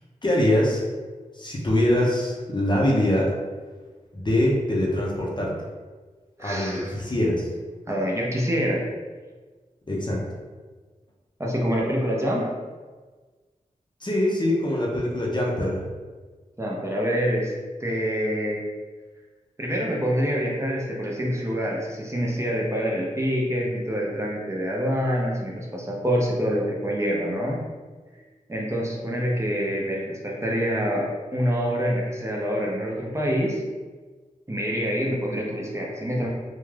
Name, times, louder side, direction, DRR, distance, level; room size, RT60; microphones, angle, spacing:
voice 1, 0.2-0.9 1.3-3.3 4.1-5.5 6.4-7.5 9.9-10.2 14.0-15.8, left 1 dB, 35° left, -3 dB, 0.6 m, -23 dB
voice 2, 6.4-6.9 7.9-8.9 11.4-12.5 16.6-17.5 17.8-18.6 19.6-27.6 28.5-33.6 34.5-36.3, equal, 20° right, -3 dB, 0.6 m, -26 dB
2.4 x 2.3 x 3.2 m, 1.4 s
cardioid pair, 50°, 14 cm